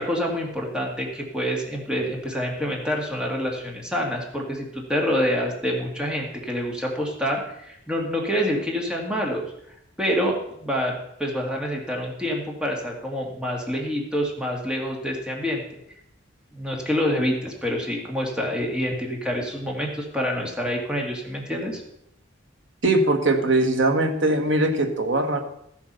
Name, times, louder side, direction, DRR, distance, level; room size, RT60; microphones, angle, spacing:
voice 1, 0.0-9.5 10.0-15.6 16.5-21.8, equal, 5° right, -1 dB, 2.1 m, -27 dB
voice 2, 22.8-25.4, right 2 dB, 70° right, 5 dB, 1.7 m, -21 dB
14.5 x 7.2 x 5.6 m, 0.77 s
head